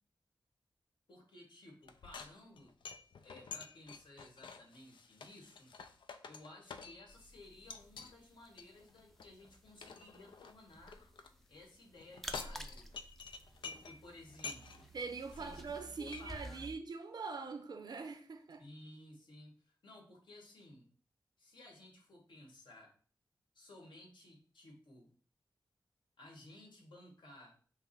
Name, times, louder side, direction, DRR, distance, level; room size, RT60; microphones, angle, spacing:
voice 1, 1.1-2.7 3.2-5.7 6.3-11.0 11.5-12.9 13.6-14.8 15.3-16.7 18.6-20.9 21.4-22.9 23.5-25.1 26.2-27.6, left 1 dB, 75° left, 1.6 m, -56 dB
sound 1, 1.8-7.2 7.7-8.1 8.6-11.3 12.0-14.0 14.3-14.9 15.3-15.4 15.7-16.2, left 5 dB, 90° left, 0.4 m, -49 dB
sound 2, 7.1-16.8, equal, 5° left, 0.4 m, -53 dB
voice 2, 14.9-18.6, right 4 dB, 60° right, 0.5 m, -43 dB
5.7 x 2.0 x 4.4 m
wide cardioid pair, 105°, 8 cm